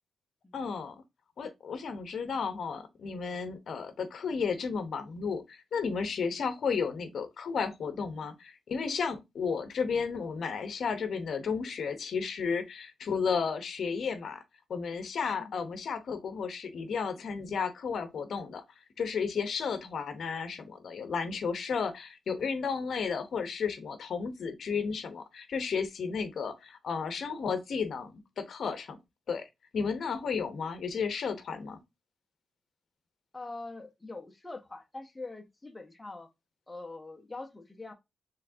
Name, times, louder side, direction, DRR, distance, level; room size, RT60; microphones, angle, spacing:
voice 1, 0.5-1.0 1.4-14.4 14.7-18.6 19.0-29.0 29.3-29.5 29.7-31.8, left 5 dB, 60° left, 0.8 m, -33 dB
voice 2, 33.3-36.3 36.7-37.9, left 3 dB, 15° left, 0.8 m, -43 dB
4.6 x 3.3 x 2.6 m
cardioid pair, 120°, 0 cm